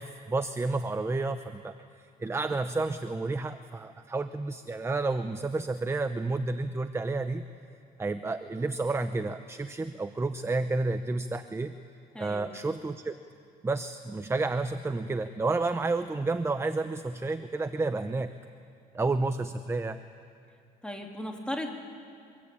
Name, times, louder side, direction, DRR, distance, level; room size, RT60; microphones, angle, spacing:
voice 1, 0.0-1.8 2.2-7.4 8.0-11.7 12.2-13.2 13.6-18.3 18.9-20.0, right 3 dB, 15° right, 9 dB, 0.8 m, -30 dB
voice 2, 12.1-12.5 20.8-21.7, left 1 dB, 5° left, 1 dB, 3.6 m, -36 dB
25.0 x 23.5 x 8.7 m, 2.4 s
cardioid pair, 110°, 17 cm